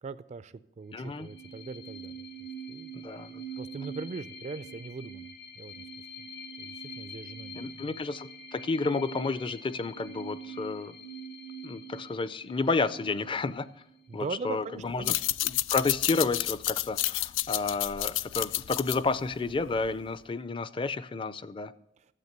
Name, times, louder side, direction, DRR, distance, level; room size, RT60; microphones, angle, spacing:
voice 1, 0.0-2.2 2.7-2.9 3.6-5.3 5.6-5.8 6.6-7.9 14.1-15.2, right 4 dB, 40° right, 14 dB, 0.3 m, -40 dB
voice 2, 0.9-1.3 2.9-3.4 7.5-11.0 11.6-13.7 14.1-15.1 15.4-21.7, left 3 dB, 25° left, 16 dB, 0.4 m, -31 dB
sound 1, 1.0-14.3, right 3 dB, 65° left, 1.4 m, -44 dB
sound 2, 14.9-20.1, left 15 dB, 90° left, 0.3 m, -30 dB
12.5 x 8.1 x 6.6 m, 0.87 s
head